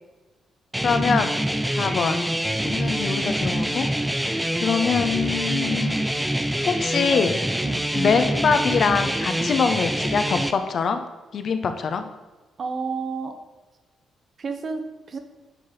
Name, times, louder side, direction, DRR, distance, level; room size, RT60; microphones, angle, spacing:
sound 1, 0.7-10.5, right 1 dB, 5° right, 0.5 m, -25 dB
voice 1, 0.8-1.3 1.7-2.2 2.6-3.9 4.3-5.9 6.7-7.4 7.9-11.0 11.3-12.1, left 6 dB, 60° left, 8 dB, 0.6 m, -24 dB
voice 2, 12.6-13.4 14.4-15.2, right 4 dB, 55° right, 7 dB, 0.8 m, -31 dB
8.2 x 3.9 x 4.0 m, 1.2 s
supercardioid pair, 55°, 0 cm